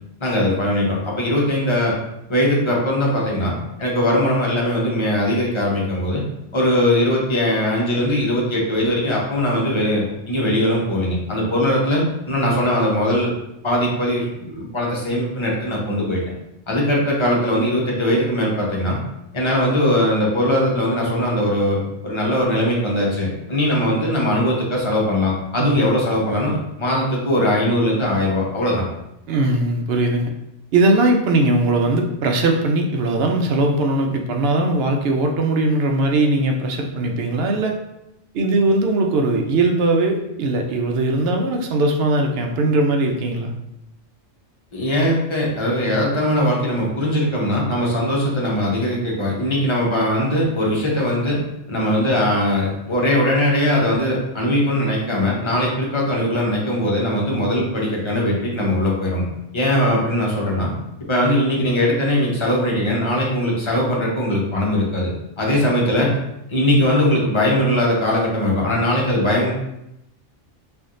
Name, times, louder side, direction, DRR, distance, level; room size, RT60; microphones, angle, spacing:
voice 1, 0.2-1.9 2.3-3.5 3.8-6.2 6.5-13.3 13.6-16.2 16.7-19.0 19.3-28.8 44.7-51.4 51.7-59.2 59.5-60.7 61.1-65.1 65.4-66.1 66.5-69.5, left 1 dB, 30° left, -4 dB, 0.7 m, -20 dB
voice 2, 29.3-30.3 30.7-37.8 38.3-43.5, right 2 dB, 65° right, 2 dB, 0.8 m, -19 dB
4.5 x 2.6 x 2.5 m, 0.86 s
omnidirectional pair, 1.2 m